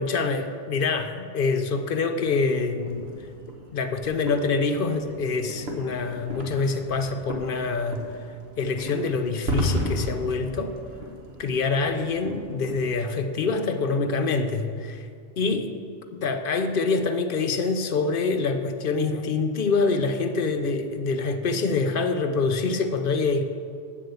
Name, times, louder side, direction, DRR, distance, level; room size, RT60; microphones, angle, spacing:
voice 1, 0.0-3.0 3.7-8.1 8.6-10.7 11.4-15.1 15.4-15.7 16.1-23.4, left 4 dB, 60° left, 7 dB, 0.8 m, -25 dB
sound 1, 2.8-12.7, equal, 70° right, 1.5 m, -34 dB
8.3 x 7.1 x 6.9 m, 2.4 s
omnidirectional pair, 1.1 m